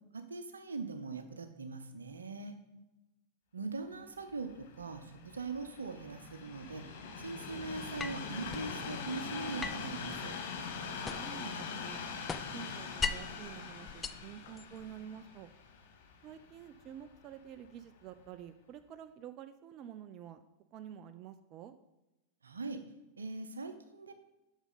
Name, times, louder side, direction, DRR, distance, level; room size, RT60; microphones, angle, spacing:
voice 1, 0.1-2.5 3.5-6.8 7.2-10.3 22.4-22.8 23.2-24.1, right 3 dB, 85° right, 9 dB, 0.7 m, -41 dB
Train, 4.2-17.4 18.1-18.2, left 5 dB, 65° left, 0.9 m, -43 dB
sound 1, 8.0-8.7 9.6-11.5 11.8-13.4 13.9-14.9, left 5 dB, 20° left, 0.4 m, -39 dB
voice 2, 11.2-12.1 12.5-15.5 16.2-20.4 20.7-21.7, right 9 dB, 40° right, 10 dB, 0.5 m, -49 dB
8.0 x 6.4 x 3.9 m, 1.0 s
hypercardioid pair, 95°, 0 cm